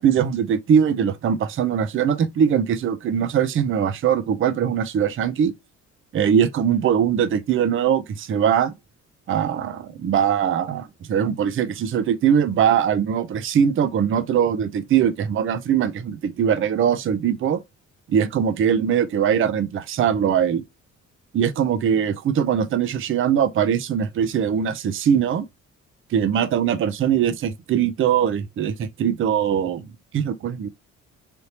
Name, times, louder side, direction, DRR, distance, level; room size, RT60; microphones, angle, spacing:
voice 1, 0.0-5.5 6.1-8.7 9.3-17.6 18.1-20.6 21.3-25.5 26.1-30.7, right 8 dB, 45° right, 0.5 m, -21 dB
3.4 x 2.7 x 2.8 m
cardioid pair, 90°, 30 cm